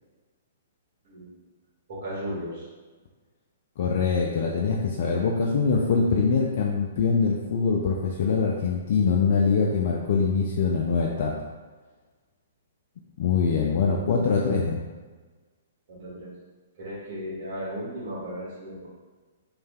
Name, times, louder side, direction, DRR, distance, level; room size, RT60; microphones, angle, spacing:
voice 1, 1.0-1.4 1.9-2.7 15.9-16.3 16.7-18.9, equal, 50° right, -8 dB, 1.5 m, -35 dB
voice 2, 3.8-11.3 13.2-14.8, left 5 dB, 50° left, -2 dB, 0.3 m, -23 dB
3.2 x 3.1 x 2.2 m, 1.3 s
figure-of-eight pair, 115°, 0 cm